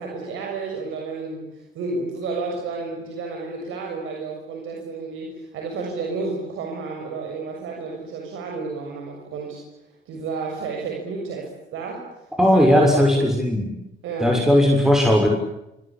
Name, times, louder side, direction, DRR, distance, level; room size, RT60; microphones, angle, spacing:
voice 1, 0.0-9.6 10.0-12.1 12.5-13.2 14.0-14.4, right 4 dB, 90° right, 0 dB, 6.9 m, -31 dB
voice 2, 12.4-13.7 14.2-15.3, equal, ahead, 1 dB, 6.5 m, -17 dB
27.0 x 25.5 x 8.7 m, 0.90 s
cardioid pair, 90°, 20 cm